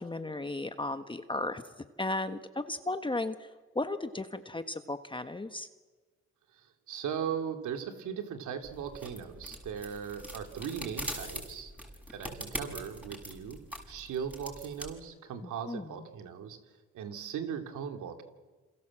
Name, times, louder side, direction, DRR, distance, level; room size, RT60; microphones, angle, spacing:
voice 1, 0.0-5.7 15.4-16.0, left 2 dB, 15° left, 9 dB, 1.3 m, -35 dB
voice 2, 6.5-11.7 12.1-13.6 13.9-16.6 16.9-18.2, right 8 dB, 80° right, 6 dB, 2.9 m, -38 dB
sound 1, 8.6-14.9, equal, 5° right, 6.7 m, -42 dB
28.0 x 27.0 x 7.6 m, 1.3 s
cardioid pair, 90°, 30 cm